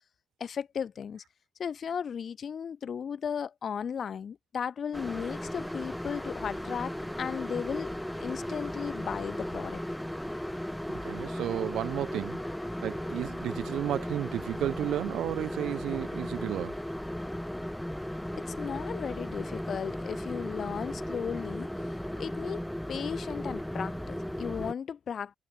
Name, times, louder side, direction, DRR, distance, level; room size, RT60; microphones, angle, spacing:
voice 1, 0.4-1.2 1.6-7.9 8.2-9.8 18.3-21.7 22.2-22.6 22.9-25.4, left 7 dB, 50° left, 0.9 m, -35 dB
sound 1, 4.9-24.7, equal, 5° left, 2.7 m, -36 dB
voice 2, 11.0-12.4 12.8-16.8, right 12 dB, 75° right, 0.6 m, -32 dB
cardioid pair, 90°, 0 cm